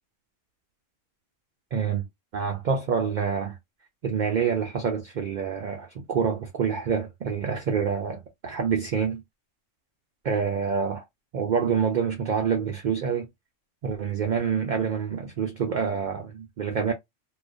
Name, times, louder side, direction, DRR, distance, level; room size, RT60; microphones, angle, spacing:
voice 1, 1.7-2.0 2.3-3.6 4.0-9.2 10.2-11.0 11.3-13.3 13.8-16.9, right 6 dB, 65° right, 0.4 m, -27 dB
2.4 x 2.2 x 2.4 m
omnidirectional pair, 1.3 m